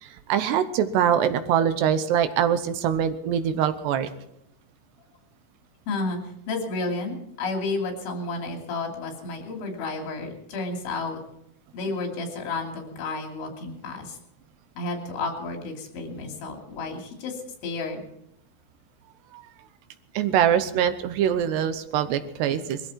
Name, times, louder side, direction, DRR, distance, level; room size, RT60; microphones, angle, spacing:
voice 1, 0.0-4.1 19.3-19.5 20.1-22.8, right 9 dB, 75° right, 11 dB, 2.8 m, -23 dB
voice 2, 5.9-6.2 6.5-11.2 11.7-14.2 14.8-18.0, left 3 dB, 85° left, 3 dB, 5.4 m, -31 dB
21.5 x 14.0 x 4.5 m, 0.79 s
omnidirectional pair, 5.2 m